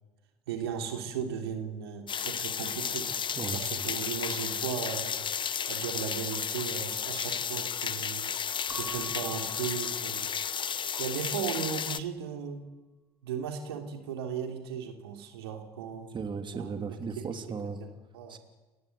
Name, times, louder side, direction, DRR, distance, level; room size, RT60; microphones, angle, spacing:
voice 1, 0.5-3.1 3.5-5.2 5.7-8.3 8.7-10.3 11.0-12.6 13.2-16.1 16.6-17.4 17.8-18.4, right 7 dB, 85° right, 5 dB, 3.2 m, -36 dB
sound 1, 2.1-12.0, left 7 dB, 40° left, 1.2 m, -33 dB
Keyboard (musical) / Bell, 8.7-11.1, right 3 dB, 15° right, 3.3 m, -48 dB
voice 2, 16.1-17.8 18.3-18.4, right 5 dB, 40° right, 7 dB, 3.1 m, -36 dB
29.5 x 16.0 x 9.5 m, 1.2 s
hypercardioid pair, 65°, 13 cm